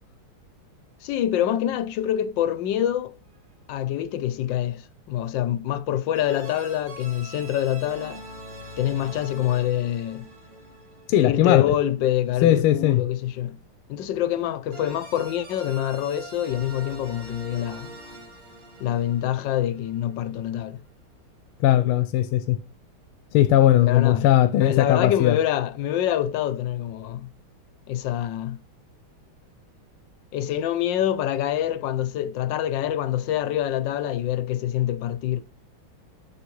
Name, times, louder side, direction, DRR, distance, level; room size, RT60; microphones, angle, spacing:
voice 1, 1.0-3.1 3.7-8.2 8.8-10.3 11.2-13.6 13.9-17.9 18.8-20.8 21.7-21.8 23.9-24.3 24.6-27.3 27.9-28.6 30.3-35.4, left 11 dB, 70° left, 1.2 m, -26 dB
sound 1, 3.2-3.7 6.2-12.0 14.7-20.6, right 2 dB, 75° right, 2.7 m, -44 dB
voice 2, 11.1-11.7 12.4-13.0 21.6-22.6 23.3-25.4, left 13 dB, 90° left, 1.5 m, -19 dB
7.1 x 6.5 x 3.1 m
omnidirectional pair, 2.3 m